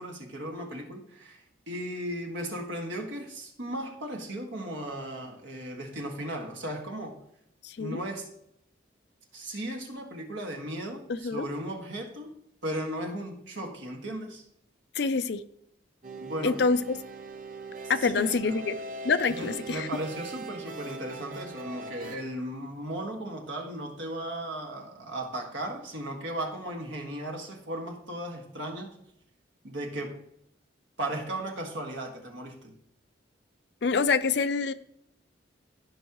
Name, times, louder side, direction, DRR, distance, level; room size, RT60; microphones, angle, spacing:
voice 1, 0.0-7.2 7.8-8.3 9.3-12.3 12.6-14.4 16.2-16.6 17.8-18.6 19.3-29.0 29.6-30.2 31.0-32.7, right 1 dB, 80° right, 2 dB, 1.8 m, -36 dB
voice 2, 7.6-8.0 11.2-11.4 15.0-15.4 16.4-17.0 17.9-18.7 19.0-19.9 33.8-34.7, left 4 dB, 60° left, 12 dB, 0.5 m, -26 dB
sound 1, 16.0-22.2, right 3 dB, 45° right, 0.7 m, -41 dB
14.5 x 5.5 x 3.0 m, 0.76 s
head